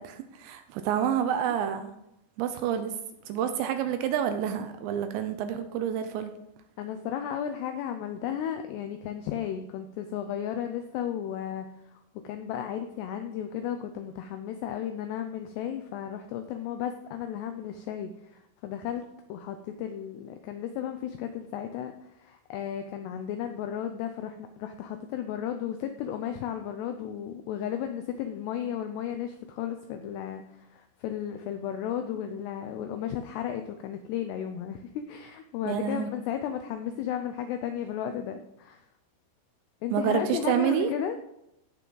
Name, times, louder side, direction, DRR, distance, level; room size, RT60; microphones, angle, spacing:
voice 1, 0.0-1.9 2.4-2.9 3.3-6.3 35.7-36.1 39.9-40.9, right 9 dB, 80° right, 8 dB, 2.7 m, -28 dB
voice 2, 6.8-19.0 19.3-38.9 39.8-41.2, left 9 dB, 85° left, 7 dB, 2.4 m, -34 dB
16.0 x 5.8 x 3.9 m, 0.82 s
omnidirectional pair, 5.5 m